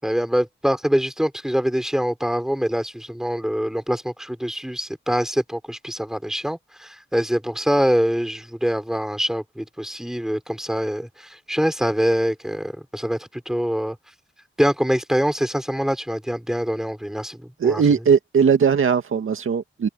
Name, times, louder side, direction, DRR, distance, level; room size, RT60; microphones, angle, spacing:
voice 1, 0.0-14.0 14.6-17.8, equal, ahead, 4.6 m, -24 dB
voice 2, 17.6-19.9, right 6 dB, 80° right, 2.2 m, -19 dB
open air
wide cardioid pair, 150°, 21 cm